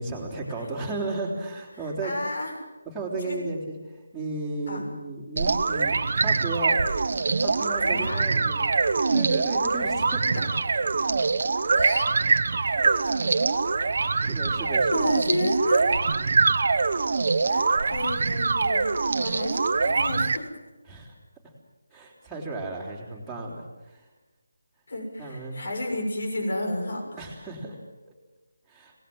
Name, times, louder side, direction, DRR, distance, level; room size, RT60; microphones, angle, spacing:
voice 1, 0.0-2.1 2.9-3.8 4.1-6.8 7.4-8.7 9.1-10.5 12.8-13.1 13.8-15.2 20.9-21.1 21.9-24.0 25.2-25.6 27.2-27.8 28.7-28.9, right 2 dB, ahead, -9 dB, 3.6 m, -34 dB
voice 2, 2.0-2.5 3.2-3.4 4.7-4.8 7.8-8.2 11.7-12.1 14.9-15.9 17.4-20.5 24.9-27.0, left 1 dB, 55° left, 3 dB, 6.7 m, -31 dB
sound 1, 5.4-20.4, right 4 dB, 45° right, 1.1 m, -24 dB
25.5 x 19.0 x 7.8 m, 1.1 s
figure-of-eight pair, 175°, 0 cm